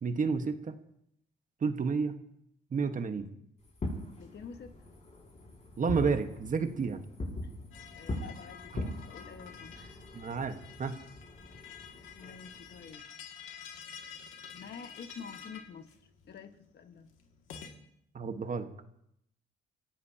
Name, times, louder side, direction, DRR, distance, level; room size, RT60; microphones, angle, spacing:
voice 1, 0.0-0.8 1.6-2.2 2.7-3.3 5.8-7.0 8.7-8.9 10.1-11.0 18.1-18.7, right 5 dB, 40° right, 1.4 m, -31 dB
Fireworks, 3.6-12.9, left 1 dB, 35° left, 6.2 m, -42 dB
voice 2, 4.1-4.7 7.4-7.5 7.9-10.0 11.7-13.1 14.5-15.9 16.3-17.1, left 6 dB, 60° left, 1.5 m, -48 dB
sound 1, 7.7-17.7, left 7 dB, 85° left, 2.2 m, -50 dB
27.0 x 16.0 x 2.9 m
cardioid pair, 90°, 20 cm